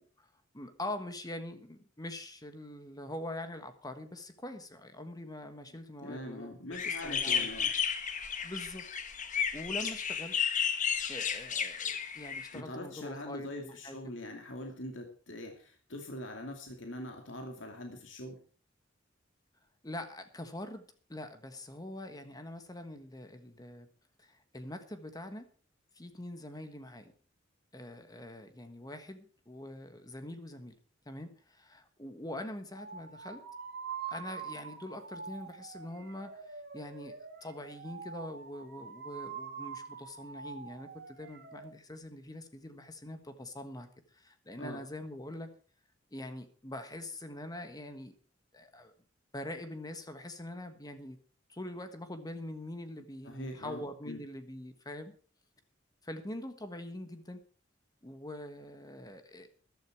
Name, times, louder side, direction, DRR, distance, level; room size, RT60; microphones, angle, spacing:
voice 1, 0.0-7.5 8.1-8.8 9.5-10.4 11.1-14.0 19.8-23.9 24.2-25.5 25.9-27.1 27.7-30.7 31.0-33.4 34.1-45.5 46.1-48.2 48.5-48.9 49.3-51.2 51.5-55.1 56.0-57.4 58.0-59.5, left 1 dB, 20° left, 9 dB, 1.3 m, -44 dB
voice 2, 6.0-7.7 12.5-18.4 44.6-44.8 53.2-54.2, left 1 dB, 75° left, 3 dB, 2.4 m, -43 dB
sound 1, 6.7-12.6, left 7 dB, 40° left, 1.3 m, -33 dB
sound 2, 32.8-41.6, right 6 dB, 55° right, 2.2 m, -45 dB
14.5 x 12.0 x 4.7 m, 0.40 s
head